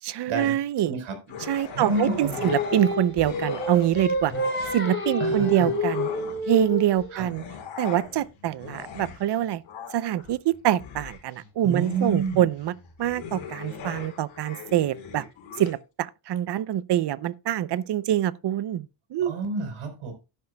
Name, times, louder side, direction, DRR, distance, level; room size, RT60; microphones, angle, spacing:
voice 1, 0.0-0.9 1.4-4.3 4.7-6.1 6.5-7.4 7.8-9.6 9.9-15.2 15.6-19.3, right 11 dB, 55° right, 0.7 m, -25 dB
voice 2, 0.8-1.2 1.7-2.5 5.2-5.7 7.1-7.2 11.6-12.4 19.2-20.1, right 3 dB, 80° right, 4.4 m, -29 dB
sound 1, 1.3-3.9 4.2-6.6 7.1-15.7, left 5 dB, 75° left, 4.8 m, -40 dB
Singing, 1.9-7.2, left 1 dB, 25° left, 4.8 m, -29 dB
12.0 x 11.0 x 2.3 m
cardioid pair, 145°, 48 cm